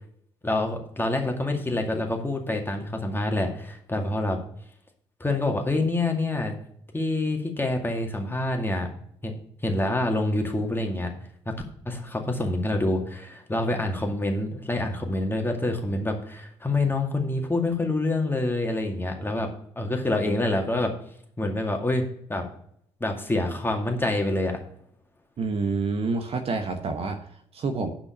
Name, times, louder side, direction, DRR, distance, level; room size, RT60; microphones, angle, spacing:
voice 1, 0.4-4.4 5.2-6.5 6.9-8.9 9.2-9.4 9.6-11.1 11.9-19.5 19.8-20.9 21.4-22.5 23.0-24.6, left 2 dB, 15° left, 3 dB, 2.2 m, -26 dB
voice 2, 25.4-27.9, right 4 dB, 45° right, 7 dB, 1.0 m, -28 dB
8.1 x 6.0 x 7.0 m, 0.66 s
figure-of-eight pair, 45°, 14 cm